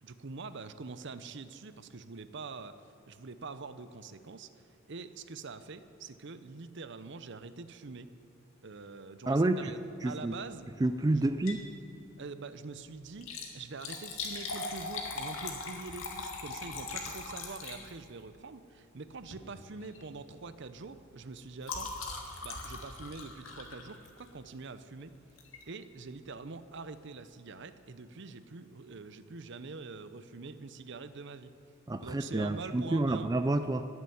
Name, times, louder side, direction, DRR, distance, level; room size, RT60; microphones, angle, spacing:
voice 1, 0.0-2.8 3.1-4.5 4.9-8.1 8.6-10.7 11.1-11.3 12.2-21.9 22.4-25.1 25.7-31.5 32.0-33.3, right 4 dB, 60° right, 13 dB, 0.7 m, -45 dB
voice 2, 9.3-9.7 10.0-10.3 10.8-11.6 31.9-33.9, right 2 dB, 20° right, 9 dB, 0.4 m, -29 dB
Liquid, 11.3-11.7 12.1-12.2 13.1-18.2 19.2-19.5 19.8-20.1 20.4-24.4 25.4-25.6 26.2-26.3 26.5-26.6, left 3 dB, 80° left, 2.1 m, -40 dB
15.0 x 7.9 x 10.0 m, 2.6 s
head